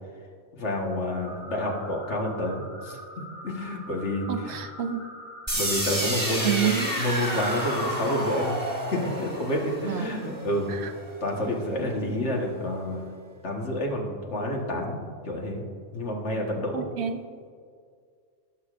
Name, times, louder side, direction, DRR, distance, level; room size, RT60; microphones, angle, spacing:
voice 1, 0.5-4.5 5.5-10.7 11.2-13.0 13.4-15.0 15.2-15.6 15.9-16.8, left 1 dB, 65° left, 0 dB, 1.7 m, -29 dB
sound 1, 1.2-7.1, equal, 25° left, 1.6 m, -44 dB
voice 2, 4.3-5.0 6.4-7.0 9.9-10.1 10.7-10.9 16.7-17.2, right 9 dB, 65° right, 8 dB, 0.9 m, -29 dB
sound 2, 5.5-11.4, right 1 dB, 15° right, 1.4 m, -30 dB
19.0 x 6.7 x 2.5 m, 2.1 s
omnidirectional pair, 1.3 m